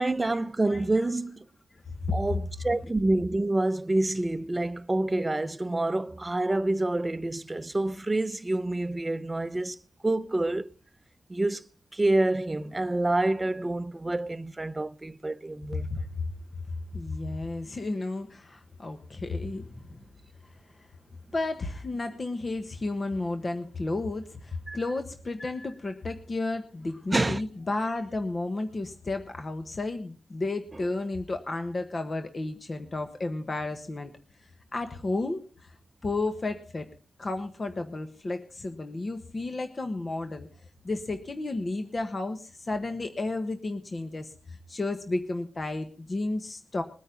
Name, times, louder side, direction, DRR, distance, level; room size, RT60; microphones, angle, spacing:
voice 1, 0.0-1.4 2.1-9.8 10.0-10.7 11.3-11.6 11.9-15.9 24.7-24.8 27.1-27.4, right 2 dB, 20° right, 0.8 m, -27 dB
voice 2, 0.7-1.1 2.1-2.2 15.7-16.1 16.9-20.0 20.7-20.9 21.3-34.1 34.7-35.7 36.0-36.9 37.2-40.5 40.8-46.8, left 2 dB, 40° left, 1.3 m, -32 dB
21.5 x 9.2 x 3.9 m
wide cardioid pair, 100°, 0 cm